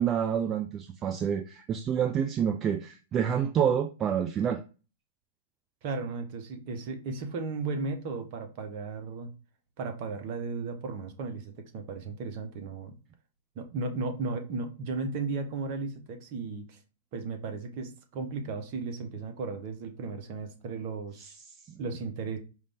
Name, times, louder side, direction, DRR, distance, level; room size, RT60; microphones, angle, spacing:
voice 1, 0.0-4.6 21.2-21.3 21.7-21.8, right 8 dB, 30° right, 0.4 m, -28 dB
voice 2, 5.8-9.3 9.8-12.9 13.5-16.8 17.1-21.3 21.8-22.4, right 4 dB, 50° right, 1.1 m, -35 dB
4.9 x 2.6 x 3.6 m
hypercardioid pair, 110°, 0 cm